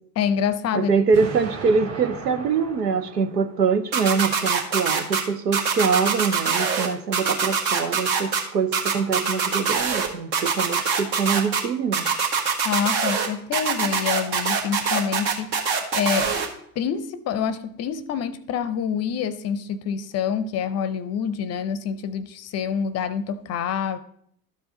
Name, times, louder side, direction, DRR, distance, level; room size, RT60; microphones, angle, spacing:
voice 1, 0.2-0.9 12.6-16.3 16.8-24.0, left 7 dB, 35° left, 15 dB, 0.6 m, -27 dB
voice 2, 0.7-12.1, right 5 dB, 80° right, 9 dB, 0.8 m, -24 dB
Explosion, 1.1-4.1, right 4 dB, 30° right, 1.6 m, -37 dB
sound 1, 3.9-5.2 5.5-6.9 7.1-8.4 8.7-10.1 10.3-11.6 11.9-13.3 13.5-16.5, right 6 dB, 55° right, 1.6 m, -23 dB
12.5 x 4.7 x 3.8 m, 0.68 s
figure-of-eight pair, 65°, 48 cm